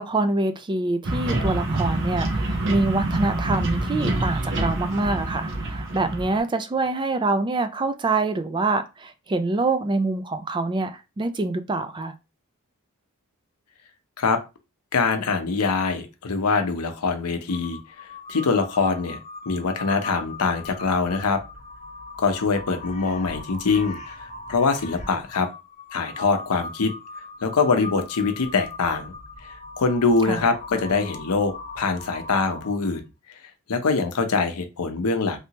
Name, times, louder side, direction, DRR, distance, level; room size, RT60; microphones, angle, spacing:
voice 1, 0.0-12.1 30.2-30.4, right 3 dB, 20° right, 0.3 m, -25 dB
sound 1, 1.0-6.4, right 2 dB, 55° right, 0.9 m, -26 dB
voice 2, 14.9-17.8 18.3-19.2 19.5-21.4 22.2-24.1 24.5-25.5 25.9-26.9 27.4-29.1 29.8-33.0 33.7-35.4, left 4 dB, 85° left, 0.7 m, -23 dB
Crow, 17.5-33.0, left 3 dB, 30° left, 0.6 m, -39 dB
3.2 x 2.9 x 2.8 m
head